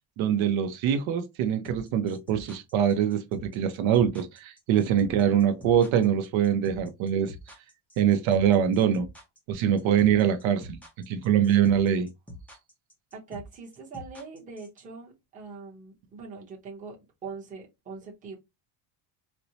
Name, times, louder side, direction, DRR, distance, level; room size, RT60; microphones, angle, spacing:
voice 1, 0.2-7.3 8.0-9.1 9.5-10.8 11.1-12.1, right 9 dB, 70° right, 0.7 m, -23 dB
sound 1, 1.6-14.8, left 1 dB, 5° left, 0.4 m, -45 dB
voice 2, 13.1-18.4, right 4 dB, 15° right, 0.8 m, -42 dB
4.3 x 2.1 x 2.7 m
cardioid pair, 170°, 48 cm